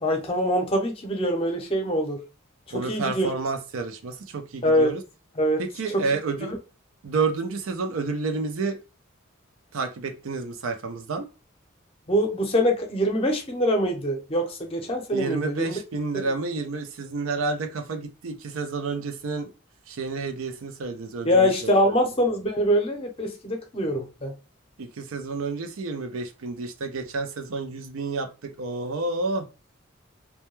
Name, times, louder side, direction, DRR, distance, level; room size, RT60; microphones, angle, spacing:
voice 1, 0.0-2.2 2.9-3.3 4.6-4.9 5.4-5.6 5.9-6.0 6.5-6.6 12.1-15.8 21.2-24.3, equal, 30° left, 0.6 m, -24 dB
voice 2, 2.7-5.0 5.6-6.5 7.0-8.8 9.7-11.3 15.1-19.5 19.9-21.7 24.8-29.4, right 3 dB, 90° right, 0.5 m, -30 dB
2.2 x 2.2 x 3.0 m
head